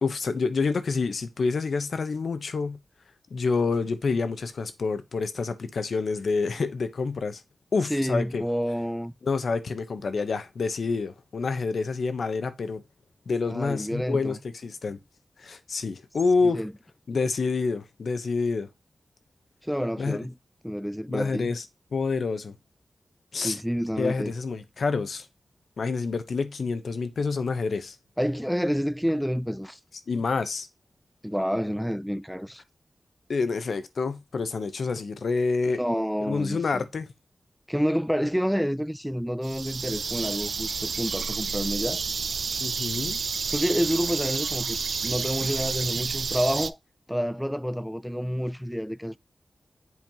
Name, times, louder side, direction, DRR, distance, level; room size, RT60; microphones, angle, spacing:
voice 1, 0.0-2.8 3.3-7.4 7.7-8.4 9.2-12.8 13.3-15.0 15.4-16.6 17.1-18.7 20.0-20.2 21.1-21.6 21.9-22.5 23.3-23.6 24.0-25.3 25.8-28.0 30.1-30.7 33.3-35.8 36.3-37.1 42.6-43.2, left 4 dB, 75° left, 1.0 m, -28 dB
voice 2, 7.9-9.1 13.5-14.4 16.4-16.7 19.6-20.3 20.6-21.5 23.4-24.3 28.2-29.8 31.2-32.6 35.7-36.8 37.7-42.0 43.5-46.8 47.1-49.2, equal, ahead, 0.4 m, -28 dB
sound 1, 39.4-46.7, right 5 dB, 75° right, 0.4 m, -30 dB
7.8 x 5.5 x 3.0 m
wide cardioid pair, 115°, 0 cm